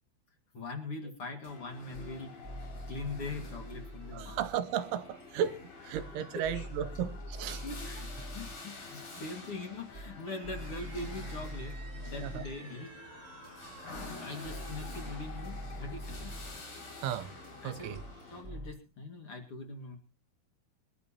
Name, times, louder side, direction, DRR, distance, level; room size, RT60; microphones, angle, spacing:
voice 1, 0.5-4.4 6.3-6.7 7.0-7.1 7.6-12.9 14.2-16.5 17.6-18.0 18.3-19.9, left 2 dB, 85° left, 1.2 m, -42 dB
sound 1, 1.2-1.5 1.9-4.7 5.2-8.7 9.2-13.5 13.9-18.7, equal, 15° left, 8.2 m, -44 dB
sound 2, 1.4-18.4, left 3 dB, 45° left, 7.4 m, -48 dB
voice 2, 4.1-7.6 12.2-12.4 17.0-17.3 17.6-18.0, right 9 dB, 75° right, 3.0 m, -35 dB
sound 3, 10.2-16.8, right 5 dB, 50° right, 1.2 m, -54 dB
25.0 x 12.0 x 2.9 m
omnidirectional pair, 6.0 m